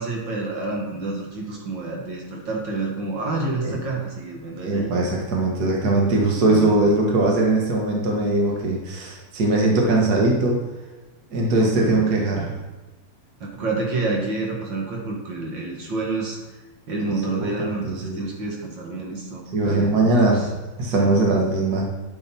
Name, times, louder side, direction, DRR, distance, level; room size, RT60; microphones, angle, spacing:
voice 1, 0.0-4.9 6.3-6.9 11.6-12.6 13.4-16.4 16.9-20.5 20.9-21.2, right 3 dB, 45° right, -1 dB, 1.6 m, -29 dB
voice 2, 4.6-10.6 11.3-12.5 17.2-17.3 17.7-18.2 19.5-20.5 20.8-21.8, right 2 dB, 65° right, -1 dB, 0.9 m, -20 dB
10.5 x 9.1 x 4.5 m, 1.2 s
omnidirectional pair, 4.4 m